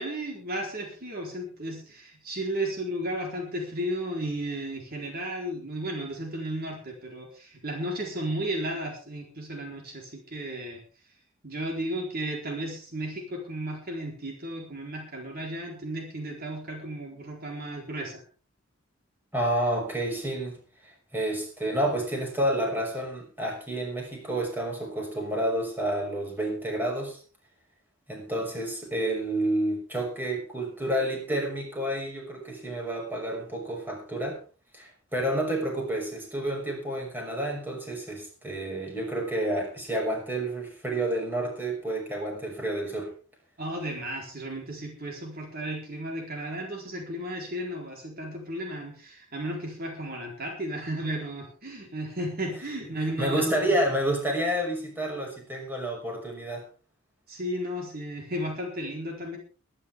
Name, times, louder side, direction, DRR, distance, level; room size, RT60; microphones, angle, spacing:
voice 1, 0.0-10.8 11.4-18.2 43.6-53.6 57.3-59.4, right 1 dB, 45° right, 1 dB, 4.1 m, -34 dB
voice 2, 19.3-20.6 20.8-27.2 28.1-34.4 34.7-43.1 53.2-56.6, right 1 dB, 10° right, 0 dB, 6.0 m, -29 dB
22.5 x 11.0 x 3.7 m, 0.37 s
head